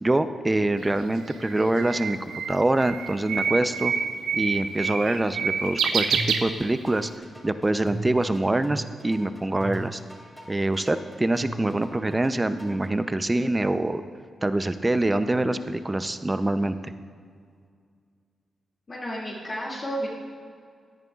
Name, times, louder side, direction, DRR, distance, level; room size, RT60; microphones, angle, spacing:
voice 1, 0.0-2.2 2.5-3.9 4.3-7.1 7.4-10.0 10.5-14.0 14.4-16.9, right 2 dB, 20° right, 11 dB, 0.6 m, -25 dB
Bird, 0.8-7.1, right 6 dB, 85° right, 0.6 m, -28 dB
sound 1, 6.1-12.9, right 1 dB, ahead, 3.0 m, -38 dB
voice 2, 18.9-20.1, equal, 45° left, -7 dB, 2.4 m, -32 dB
16.0 x 10.5 x 2.4 m, 2.1 s
supercardioid pair, 55°, 0 cm